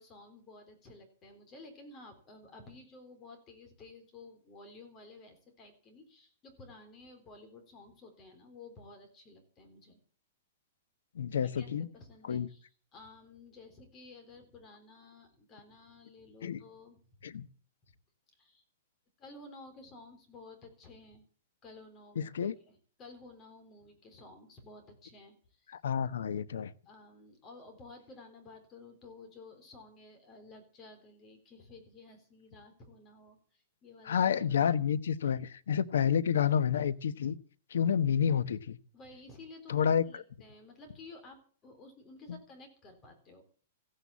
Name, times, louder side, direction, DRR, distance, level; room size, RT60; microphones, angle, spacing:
voice 1, 0.0-10.0 11.4-17.2 18.4-18.6 19.2-21.2 21.6-25.8 26.9-34.2 35.2-35.4 38.9-43.4, left 3 dB, 20° left, 6 dB, 3.7 m, -53 dB
voice 2, 11.1-11.9 12.3-12.5 16.4-16.6 17.2-17.5 22.2-22.5 25.8-26.7 34.1-37.4 37.7-38.8 39.7-40.2 42.3-42.4, left 8 dB, 90° left, 17 dB, 1.1 m, -29 dB
15.5 x 9.0 x 8.4 m, 0.43 s
hypercardioid pair, 170°, 0 cm